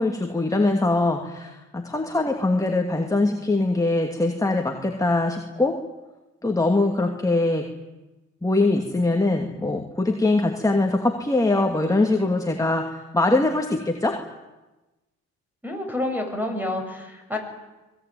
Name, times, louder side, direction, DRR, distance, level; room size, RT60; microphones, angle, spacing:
voice 1, 0.0-5.8 6.4-7.7 8.4-14.2, left 2 dB, 10° left, 2 dB, 2.7 m, -22 dB
voice 2, 15.6-17.4, left 1 dB, 5° right, 4 dB, 8.0 m, -28 dB
25.0 x 21.0 x 9.4 m, 1.1 s
cardioid pair, 90°, 30 cm